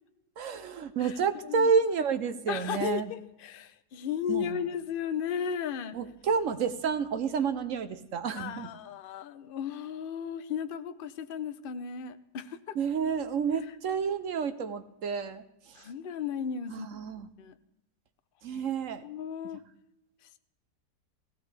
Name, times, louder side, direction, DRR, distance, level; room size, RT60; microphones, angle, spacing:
voice 1, 0.4-3.1 4.3-4.6 5.9-8.7 12.7-15.8 16.7-17.3 18.4-19.0, right 6 dB, 60° right, 10 dB, 1.0 m, -30 dB
voice 2, 2.5-6.0 8.4-12.8 15.8-16.9 17.4-17.5 18.5-18.6 19.0-19.6, left 7 dB, 60° left, 11 dB, 0.5 m, -35 dB
17.0 x 16.0 x 3.3 m, 0.89 s
omnidirectional pair, 1.8 m